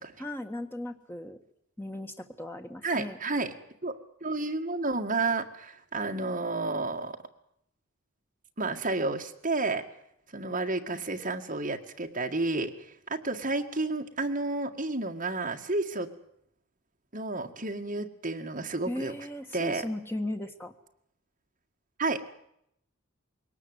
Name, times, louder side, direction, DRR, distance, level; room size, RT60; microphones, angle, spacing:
voice 1, 0.2-1.4 1.8-3.2 18.9-20.7, left 1 dB, 10° left, 5 dB, 1.6 m, -37 dB
voice 2, 2.8-3.5 3.8-7.2 8.6-9.8 10.3-16.1 17.1-19.1 19.5-19.8 22.0-22.2, right 3 dB, 35° right, 3 dB, 1.9 m, -31 dB
22.0 x 18.5 x 8.1 m, 0.75 s
head